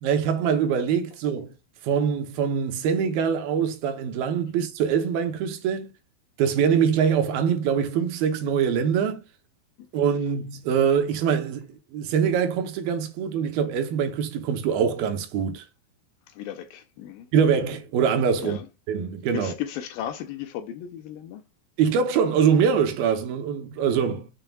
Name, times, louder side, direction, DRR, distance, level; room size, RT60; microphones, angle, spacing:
voice 1, 0.0-1.5 1.8-5.9 6.4-9.2 9.9-15.7 17.3-18.6 18.9-19.5 21.8-24.3, right 7 dB, 75° right, 2.6 m, -23 dB
voice 2, 16.3-17.3 18.4-18.7 19.3-21.4, left 10 dB, 80° left, 2.2 m, -35 dB
7.0 x 5.7 x 2.3 m
omnidirectional pair, 4.6 m